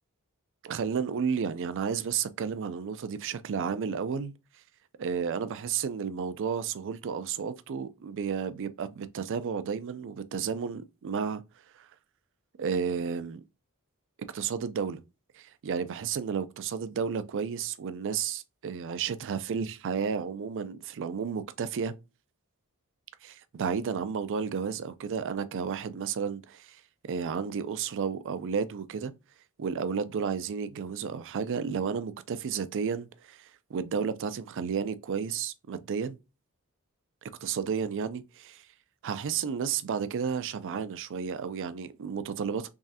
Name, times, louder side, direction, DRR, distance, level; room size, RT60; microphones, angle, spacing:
voice 1, 0.6-4.3 5.0-11.4 11.7-11.9 12.6-13.4 14.3-15.0 15.3-21.9 23.2-26.8 27.1-29.1 29.6-36.2 37.4-38.7 39.0-42.7, right 6 dB, 60° right, 0.4 m, -32 dB
3.6 x 3.1 x 2.7 m
head